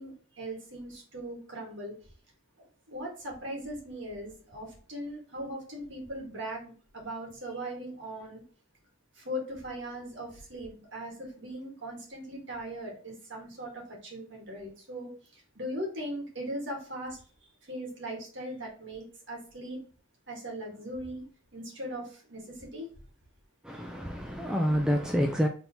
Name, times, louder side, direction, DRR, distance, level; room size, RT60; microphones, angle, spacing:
voice 1, 0.0-1.9 2.6-8.4 9.2-17.2 17.6-19.8 20.3-21.2 21.5-22.9, equal, 55° right, 1.6 m, -39 dB
voice 2, 23.6-25.5, equal, 5° right, 0.3 m, -28 dB
4.3 x 3.4 x 2.8 m
head